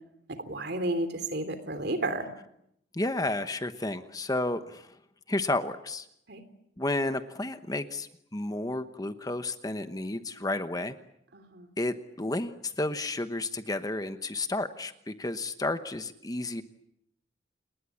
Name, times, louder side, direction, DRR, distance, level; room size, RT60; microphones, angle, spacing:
voice 1, 0.3-2.3 6.3-6.4 11.3-11.7, right 2 dB, 55° right, 10 dB, 3.2 m, -32 dB
voice 2, 2.9-4.9 5.3-6.1 6.8-11.0 11.8-16.6, left 2 dB, 20° left, 10 dB, 1.0 m, -32 dB
29.0 x 20.5 x 8.4 m, 0.77 s
head